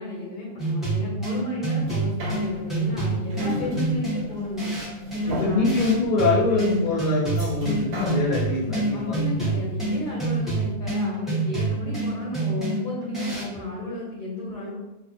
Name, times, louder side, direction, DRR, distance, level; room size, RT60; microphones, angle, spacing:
voice 1, 0.0-4.7 5.1-5.8 8.9-14.8, left 1 dB, 40° left, -6 dB, 0.9 m, -33 dB
sound 1, 0.6-13.6, right 2 dB, ahead, 0.6 m, -27 dB
sound 2, 1.8-10.3 10.7-10.8, left 2 dB, 85° right, 1.0 m, -35 dB
voice 2, 5.3-9.5, left 3 dB, 65° left, -5 dB, 0.4 m, -24 dB
2.5 x 2.1 x 2.5 m, 0.90 s
omnidirectional pair, 1.4 m